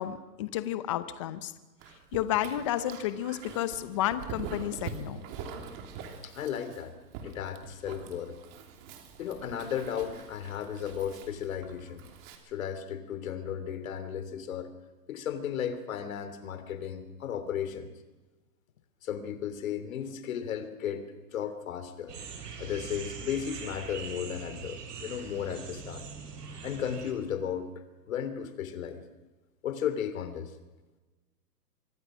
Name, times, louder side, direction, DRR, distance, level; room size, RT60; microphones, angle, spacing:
voice 1, 0.0-1.5 2.1-5.2, left 12 dB, 20° left, 13 dB, 0.7 m, -31 dB
Dog, 1.8-12.4, right 6 dB, 25° right, 3.0 m, -44 dB
voice 2, 6.2-6.9 7.2-8.4 9.2-12.1 12.4-14.7 15.1-17.9 19.0-21.1 21.3-22.1 22.6-26.1 26.6-27.7 28.1-29.0 29.6-30.5, left 8 dB, 55° left, 10 dB, 3.0 m, -35 dB
sound 1, 22.1-27.1, right 5 dB, 70° right, 6.6 m, -42 dB
25.0 x 24.0 x 6.2 m, 1.2 s
hypercardioid pair, 160°, 49 cm